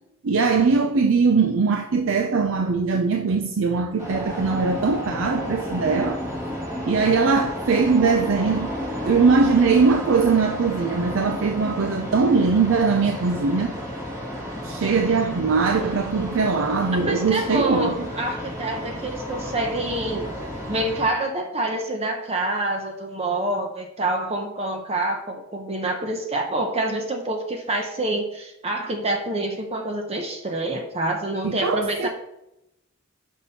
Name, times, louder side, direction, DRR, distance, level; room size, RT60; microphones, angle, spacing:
voice 1, 0.2-6.2 6.9-8.7 9.0-13.7 14.6-18.1 31.4-32.1, right 4 dB, 70° right, 0.5 m, -21 dB
sound 1, 4.0-21.0, equal, 15° right, 1.9 m, -32 dB
voice 2, 17.1-20.3 20.7-32.1, right 2 dB, 30° right, 0.8 m, -27 dB
6.0 x 5.4 x 4.2 m
head